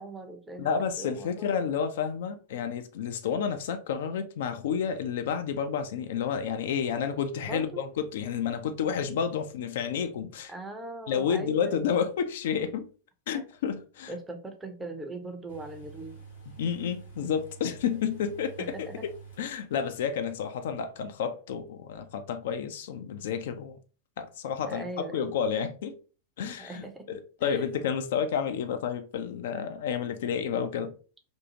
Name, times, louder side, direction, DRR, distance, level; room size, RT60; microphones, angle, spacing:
voice 1, 0.0-0.7 1.0-1.8 7.4-7.8 10.5-12.0 13.3-13.4 14.1-16.2 18.6-19.1 24.6-25.3 26.6-27.7, right 2 dB, 10° right, 0.5 m, -40 dB
voice 2, 0.6-10.5 11.1-12.9 13.3-14.1 16.6-18.5 18.8-19.1 19.4-23.8 24.2-24.9 25.1-26.0 26.4-30.9, left 7 dB, 55° left, 0.3 m, -30 dB
sound 1, 15.5-19.9 20.2-20.3, right 5 dB, 75° left, 1.0 m, -48 dB
2.6 x 2.3 x 2.7 m
figure-of-eight pair, 90°, 0 cm